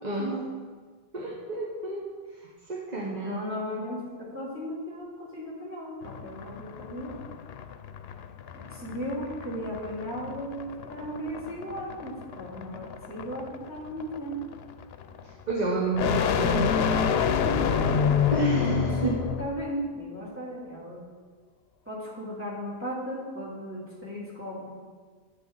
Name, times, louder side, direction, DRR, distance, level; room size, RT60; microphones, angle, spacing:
voice 1, 1.1-2.0 2.4-3.4 15.2-16.7 18.3-19.2, right 2 dB, 45° right, -4 dB, 1.3 m, -30 dB
voice 2, 3.2-7.1 8.5-14.4 17.4-18.1 18.5-21.0 21.9-24.7, equal, 10° right, -7 dB, 3.0 m, -36 dB
sound 1, 6.0-19.5, left 7 dB, 80° left, 0.8 m, -28 dB
10.5 x 8.3 x 4.0 m, 1.5 s
omnidirectional pair, 1.0 m